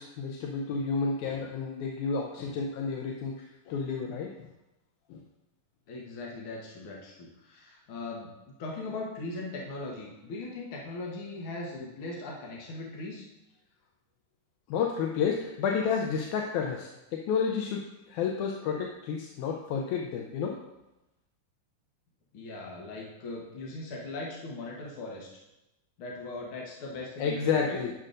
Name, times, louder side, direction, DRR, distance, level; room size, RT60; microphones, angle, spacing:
voice 1, 0.0-4.5 5.1-5.2 14.7-20.6 27.2-27.9, left 6 dB, 80° left, 1 dB, 1.9 m, -31 dB
voice 2, 5.9-8.3 8.6-13.3 22.3-25.3 26.0-27.8, left 2 dB, 60° left, -3 dB, 1.4 m, -39 dB
11.0 x 6.4 x 2.5 m, 0.95 s
omnidirectional pair, 3.7 m